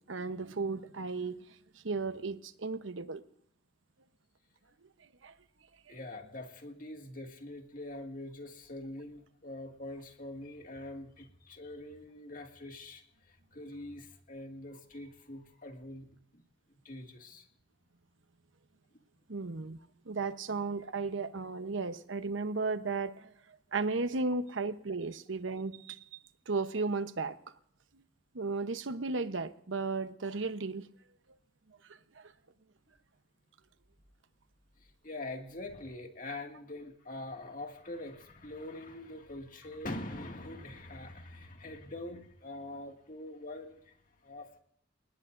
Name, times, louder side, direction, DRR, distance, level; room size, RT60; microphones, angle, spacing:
voice 1, 0.1-1.4 1.8-3.2 5.2-5.3 19.3-19.8 20.1-23.3 23.7-26.2 26.5-27.4 28.3-30.8, right 3 dB, 80° right, 11 dB, 0.9 m, -34 dB
voice 2, 5.9-13.0 13.5-16.1 16.3-16.4 16.8-17.5 35.0-43.9 44.2-44.6, left 1 dB, 45° left, 3 dB, 2.0 m, -44 dB
29.5 x 19.0 x 2.6 m, 0.67 s
head